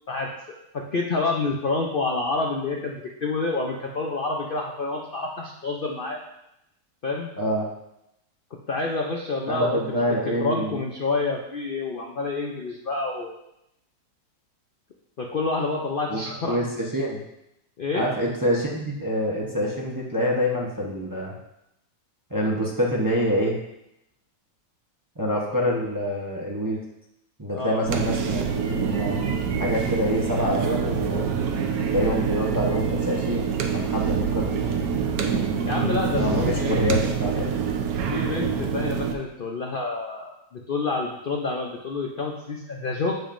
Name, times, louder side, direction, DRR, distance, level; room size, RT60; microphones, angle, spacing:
voice 1, 0.7-6.2 7.0-7.3 8.7-10.0 10.4-13.3 15.2-16.6 17.8-18.1 27.5-27.8 35.6-36.8 38.1-43.2, left 3 dB, 75° left, 0 dB, 0.4 m, -28 dB
voice 2, 7.4-7.7 9.5-10.8 16.1-17.2 17.9-21.3 22.3-23.6 25.2-26.8 27.4-29.2 29.6-31.3 31.9-34.7 36.1-37.5, equal, 20° right, -3 dB, 0.5 m, -26 dB
sound 1, 27.9-39.1, right 6 dB, 65° right, 1.1 m, -26 dB
7.9 x 7.0 x 2.6 m, 0.84 s
omnidirectional pair, 1.9 m